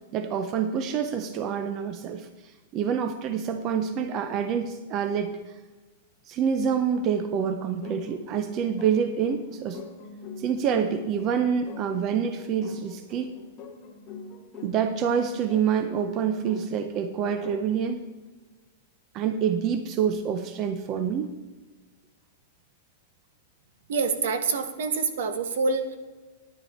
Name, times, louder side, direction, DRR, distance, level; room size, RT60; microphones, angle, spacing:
voice 1, 0.1-2.3 2.7-5.3 6.3-9.8 10.4-13.3 14.6-18.0 19.1-21.3, right 7 dB, 30° right, 8 dB, 0.6 m, -27 dB
sound 1, 7.8-17.8, left 3 dB, 20° left, 1.8 m, -43 dB
voice 2, 23.9-26.0, right 4 dB, 70° right, 9 dB, 1.2 m, -26 dB
9.9 x 9.8 x 4.3 m, 1.3 s
supercardioid pair, 160°, 0 cm